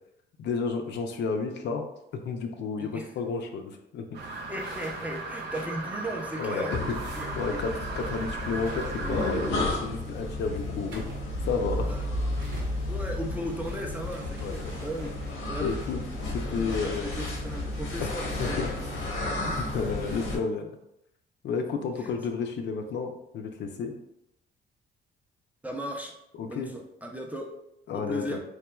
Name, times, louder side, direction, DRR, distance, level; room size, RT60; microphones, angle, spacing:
voice 1, 0.4-1.8 2.1-4.2 6.4-6.8 7.4-11.9 14.4-14.7 15.5-17.2 18.0-18.1 18.4-18.7 19.6-20.7 21.4-23.9 26.4-26.7 27.9-28.4, left 5 dB, 60° left, 4 dB, 0.4 m, -32 dB
sound 1, 4.1-9.5, right 3 dB, 60° right, 0.5 m, -37 dB
voice 2, 4.5-6.8 7.1-7.6 11.9-12.0 12.9-15.8 16.5-18.7 22.0-22.2 25.6-26.1 26.4-27.5 27.9-28.4, equal, 10° right, 1 dB, 0.4 m, -37 dB
sound 2, 4.6-7.0 7.3-7.4 7.7-9.5 10.6-15.5, right 1 dB, 85° right, 0.8 m, -49 dB
sound 3, 6.7-20.4, left 1 dB, 80° left, 0.7 m, -32 dB
3.1 x 2.2 x 2.2 m, 0.81 s
cardioid pair, 90°, 20 cm